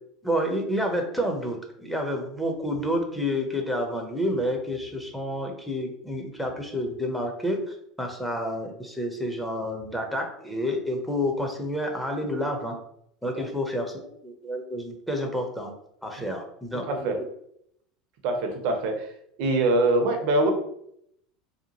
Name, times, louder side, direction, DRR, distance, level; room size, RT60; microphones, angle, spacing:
voice 1, 0.2-12.7 13.2-15.7 16.0-17.1, equal, 5° left, 2 dB, 0.6 m, -29 dB
voice 2, 16.8-17.2 18.2-19.1 19.4-20.5, right 2 dB, 55° right, 5 dB, 0.6 m, -23 dB
2.8 x 2.2 x 2.8 m, 0.72 s
hypercardioid pair, 80°, 3 cm